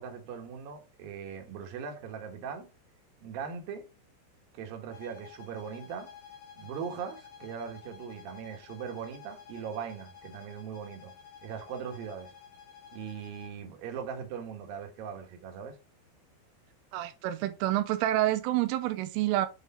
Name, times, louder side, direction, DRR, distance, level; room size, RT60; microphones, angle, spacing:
voice 1, 0.0-2.7 3.2-3.9 4.5-6.1 6.6-11.1 11.4-12.3 12.9-15.8, right 7 dB, 60° right, 2.6 m, -40 dB
sound 1, 4.9-13.6, left 8 dB, 60° left, 3.4 m, -52 dB
voice 2, 16.9-19.5, right 14 dB, 85° right, 3.2 m, -28 dB
8.2 x 4.8 x 4.2 m
omnidirectional pair, 5.6 m